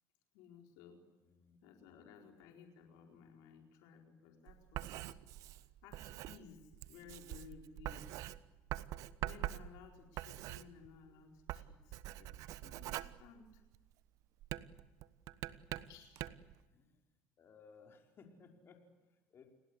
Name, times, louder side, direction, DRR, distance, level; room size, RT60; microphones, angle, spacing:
voice 1, 0.3-1.0 1.6-5.2 5.8-8.2 9.2-13.6 15.9-16.3, left 7 dB, 75° left, 3 dB, 4.3 m, -58 dB
voice 2, 1.2-1.6 11.0-11.2 12.1-12.2 16.7-17.0 17.4-19.5, left 5 dB, 40° left, 3 dB, 4.9 m, -62 dB
Writing, 4.5-11.1 11.4-13.9 14.4-16.5, right 14 dB, 65° right, 1.2 m, -44 dB
29.5 x 20.0 x 8.2 m, 1.1 s
supercardioid pair, 95°, 6 cm